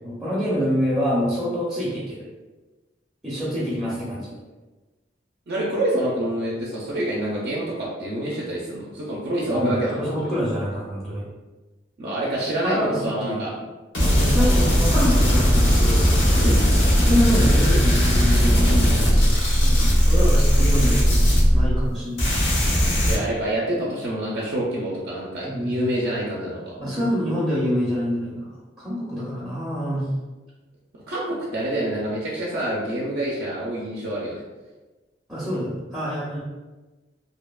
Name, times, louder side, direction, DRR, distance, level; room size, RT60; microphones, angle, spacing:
voice 1, 0.0-2.2 3.2-4.4 9.5-11.2 12.6-13.5 14.0-16.0 17.0-19.8 20.0-22.3 25.4-25.7 26.8-28.5 28.8-30.0 35.3-36.4, equal, 5° right, -10 dB, 0.5 m, -26 dB
voice 2, 5.5-10.3 12.0-13.5 14.2-14.5 16.3-16.6 23.0-26.7 31.1-34.4, right 1 dB, 60° right, -5 dB, 0.4 m, -27 dB
sound 1, 13.9-21.9 22.2-23.2, equal, 85° left, 0.8 m, -18 dB
2.7 x 2.1 x 2.2 m, 1.2 s
head